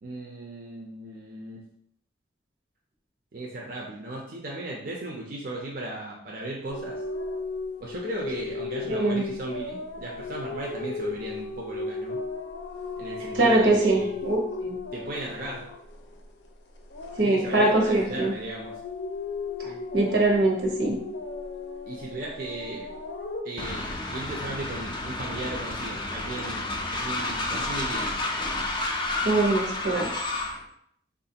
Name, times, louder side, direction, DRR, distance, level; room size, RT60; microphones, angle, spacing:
voice 1, 0.0-1.6 3.3-7.0 7.8-12.2 13.0-14.1 14.9-15.7 17.2-18.8 21.9-22.9 23.4-28.2, right 2 dB, 50° right, -2 dB, 0.5 m, -36 dB
sound 1, 6.7-16.5 16.8-23.4, left 3 dB, 85° left, 0.5 m, -35 dB
voice 2, 8.9-9.2 13.3-14.8 17.2-18.3 19.6-21.0 29.2-30.2, right 2 dB, 85° right, -1 dB, 0.9 m, -23 dB
Train, 23.6-30.6, left 2 dB, 25° left, 0.3 m, -31 dB
3.6 x 2.4 x 2.8 m, 0.68 s
head